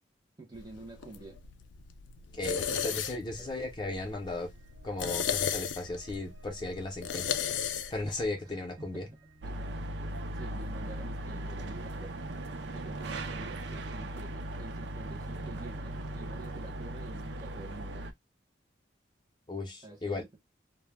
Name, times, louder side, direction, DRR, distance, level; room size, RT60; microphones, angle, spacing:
voice 1, 0.4-1.4 2.7-3.0 3.4-3.5 8.8-9.2 9.4-9.7 10.3-12.2 12.7-18.1 19.8-20.4, right 2 dB, 20° right, 0.6 m, -48 dB
sound 1, 0.5-8.2, left 8 dB, 75° left, 0.3 m, -36 dB
voice 2, 2.3-4.5 4.8-7.4 7.9-9.1 19.5-20.2, left 2 dB, 25° left, 0.6 m, -36 dB
sound 2, 3.0-9.8, right 2 dB, 85° right, 0.8 m, -59 dB
sound 3, 9.4-18.1, right 1 dB, 65° right, 0.4 m, -38 dB
2.1 x 2.1 x 3.2 m
head